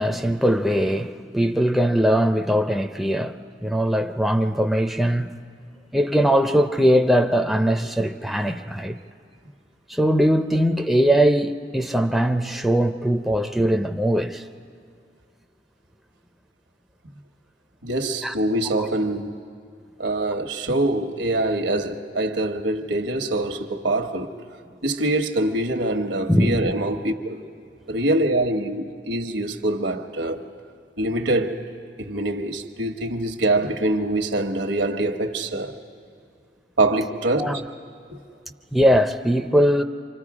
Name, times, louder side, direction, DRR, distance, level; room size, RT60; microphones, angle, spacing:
voice 1, 0.0-5.3 5.9-9.0 9.9-14.4 18.2-18.3 26.3-26.7 37.4-37.6 38.7-39.8, equal, ahead, 0.4 m, -21 dB
voice 2, 17.8-19.3 20.0-24.3 24.8-27.4 27.9-30.5 31.0-31.6 32.0-35.8 36.8-37.6 38.1-38.2, right 1 dB, 80° right, 1.2 m, -24 dB
27.5 x 25.0 x 4.9 m
head